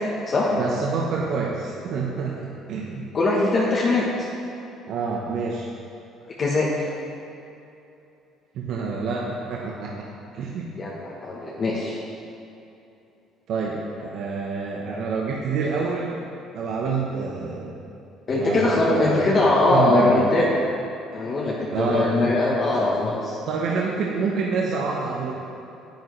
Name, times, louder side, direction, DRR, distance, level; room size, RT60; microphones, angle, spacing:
voice 1, 0.5-3.1 4.9-5.7 8.5-10.0 10.3-10.7 13.5-16.2 16.5-17.9 18.4-19.3 19.7-20.3 21.7-22.3 23.5-25.3, right 4 dB, 60° right, -3 dB, 0.9 m, -27 dB
voice 2, 3.1-4.1 6.4-6.7 10.8-12.0 18.3-20.6 21.1-23.4, left 2 dB, 30° left, -4 dB, 1.1 m, -21 dB
10.0 x 9.7 x 3.2 m, 2.8 s
cardioid pair, 150°, 0 cm